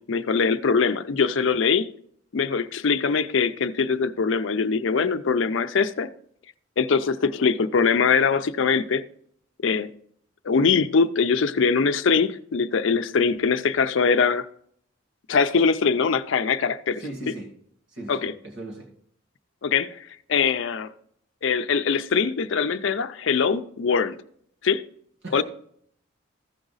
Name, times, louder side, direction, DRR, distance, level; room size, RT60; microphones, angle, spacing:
voice 1, 0.0-1.9 2.3-6.1 6.8-9.0 9.6-9.9 10.4-14.5 15.3-17.0 18.1-18.3 19.6-20.9 21.4-24.2 24.6-24.8 25.3-25.4, left 5 dB, 70° left, 0.5 m, -22 dB
voice 2, 17.0-17.5 17.9-18.9 25.2-25.4, right 1 dB, 60° right, 1.9 m, -37 dB
14.5 x 4.9 x 4.0 m
head